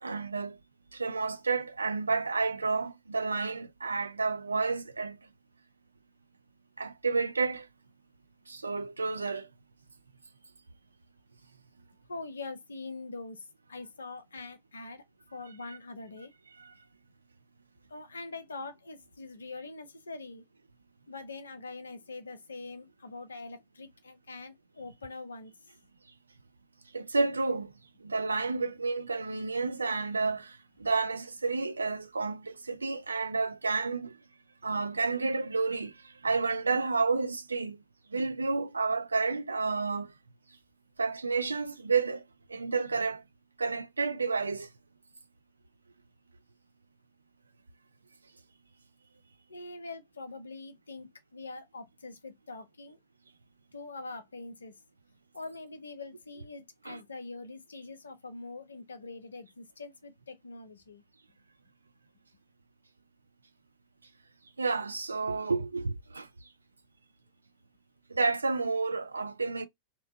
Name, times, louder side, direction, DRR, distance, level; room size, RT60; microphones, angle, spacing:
voice 1, 0.0-0.6 0.9-5.2 6.8-7.7 8.5-9.5 26.9-27.7 28.0-34.2 34.6-37.8 38.1-40.1 41.0-42.2 42.5-43.2 43.6-44.7 56.9-57.0 64.6-66.3 68.1-69.7, right 4 dB, 80° right, 0.3 m, -30 dB
voice 2, 12.1-15.0 15.3-16.3 17.9-20.5 21.1-25.5 49.5-53.0 53.7-54.8 55.3-61.0, left 3 dB, 75° left, 0.5 m, -43 dB
2.7 x 2.1 x 2.6 m
figure-of-eight pair, 90°, 0 cm